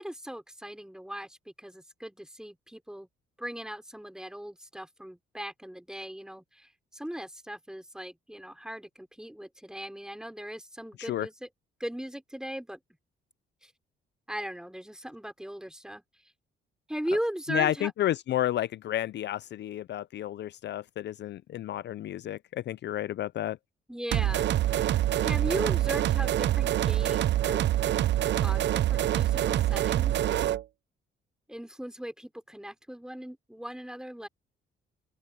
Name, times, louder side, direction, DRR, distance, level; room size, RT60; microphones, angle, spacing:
voice 1, 0.0-3.1 3.4-11.5 11.8-12.8 13.6-13.7 14.3-16.0 16.9-17.9 23.9-27.6 28.4-30.1 31.5-34.3, equal, 5° right, 5.2 m, -38 dB
voice 2, 17.5-23.6, left 12 dB, 60° left, 0.5 m, -31 dB
sound 1, 24.1-30.6, right 13 dB, 65° right, 0.6 m, -25 dB
open air
cardioid pair, 90°, 20 cm